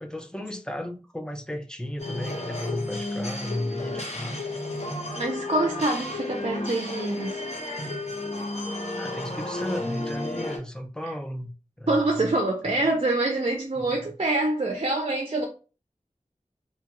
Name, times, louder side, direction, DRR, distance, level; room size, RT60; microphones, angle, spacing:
voice 1, 0.0-4.4 9.0-11.5 11.8-12.3 13.8-14.1, left 1 dB, 5° left, 0.5 m, -34 dB
sound 1, 2.0-10.6, left 2 dB, 55° left, 0.8 m, -32 dB
voice 2, 5.1-7.4 11.9-15.5, right 2 dB, 50° right, 0.5 m, -25 dB
2.8 x 2.3 x 2.9 m
wide cardioid pair, 40°, 13 cm